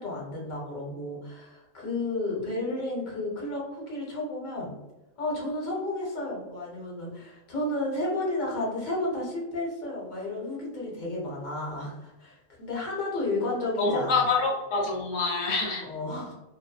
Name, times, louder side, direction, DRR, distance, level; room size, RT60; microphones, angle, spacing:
voice 1, 0.0-4.7 5.2-14.2 15.8-16.3, left 2 dB, 40° left, -4 dB, 0.9 m, -32 dB
voice 2, 13.8-15.8, left 3 dB, 80° left, -1 dB, 1.0 m, -26 dB
2.5 x 2.2 x 2.3 m, 0.99 s
omnidirectional pair, 1.3 m